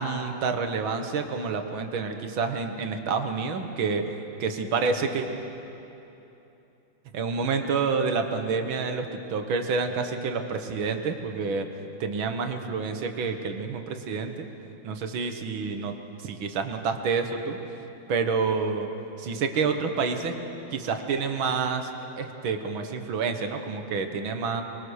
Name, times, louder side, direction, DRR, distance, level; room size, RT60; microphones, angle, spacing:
voice 1, 0.0-4.0 4.4-5.3 7.1-11.7 12.0-14.5 14.8-15.9 16.2-17.6 18.1-18.9 19.2-20.4 20.7-24.6, right 5 dB, 90° right, 6 dB, 2.1 m, -28 dB
23.0 x 22.0 x 6.4 m, 3.0 s
omnidirectional pair, 2.1 m